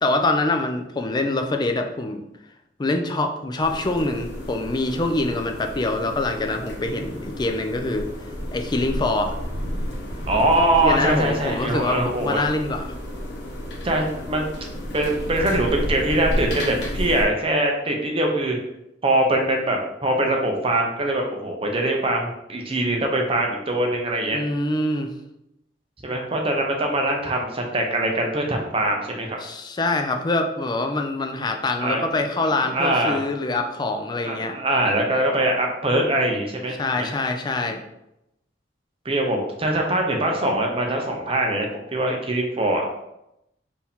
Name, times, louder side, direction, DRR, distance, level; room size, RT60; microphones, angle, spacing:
voice 1, 0.0-2.2 2.8-8.1 8.5-9.4 10.8-12.9 24.3-25.1 29.4-34.5 36.8-37.8, left 2 dB, 25° left, 5 dB, 0.4 m, -25 dB
sound 1, 3.6-17.2, equal, 70° left, 1.0 m, -31 dB
voice 2, 10.3-12.4 13.8-14.5 14.9-18.6 19.0-24.4 26.0-29.4 31.8-32.1 32.4-33.2 34.2-37.1 39.0-42.8, right 1 dB, 30° right, 1 dB, 0.7 m, -23 dB
4.5 x 2.8 x 3.5 m, 0.85 s
head